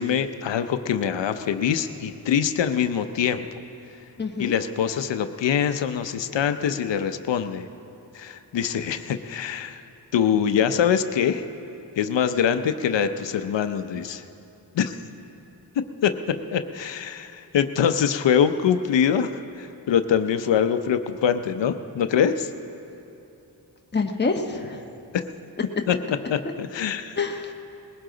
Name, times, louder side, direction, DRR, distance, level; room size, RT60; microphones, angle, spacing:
voice 1, 0.0-3.5 4.4-7.7 8.1-9.8 10.1-11.4 12.0-14.2 14.7-15.0 16.0-22.5 25.1-25.2 25.9-26.0 26.3-27.2, left 8 dB, 85° left, 9 dB, 0.7 m, -24 dB
voice 2, 4.2-4.5 23.9-24.8 27.1-27.5, left 4 dB, 25° left, 3 dB, 1.1 m, -26 dB
20.5 x 17.0 x 3.9 m, 2.8 s
cardioid pair, 55°, 42 cm